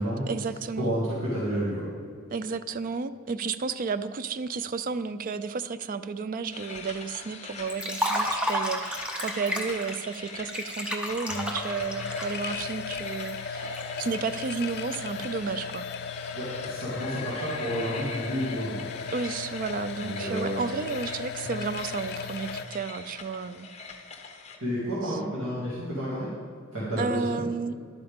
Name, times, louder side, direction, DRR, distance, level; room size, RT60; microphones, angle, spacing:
voice 1, 0.3-0.9 2.3-15.9 19.1-23.7 25.0-25.2 27.0-27.8, right 4 dB, 40° right, 13 dB, 0.3 m, -32 dB
voice 2, 0.8-1.8 16.3-18.9 20.0-20.6 24.6-26.3 26.7-27.4, equal, 70° right, -9 dB, 2.3 m, -30 dB
sound 1, 6.5-24.6, left 4 dB, 30° left, 0.8 m, -43 dB
Liquid, 7.7-13.8, equal, 5° right, 0.8 m, -32 dB
sound 2, 11.3-22.6, left 6 dB, 45° left, 0.4 m, -36 dB
11.5 x 8.6 x 3.6 m, 2.1 s
head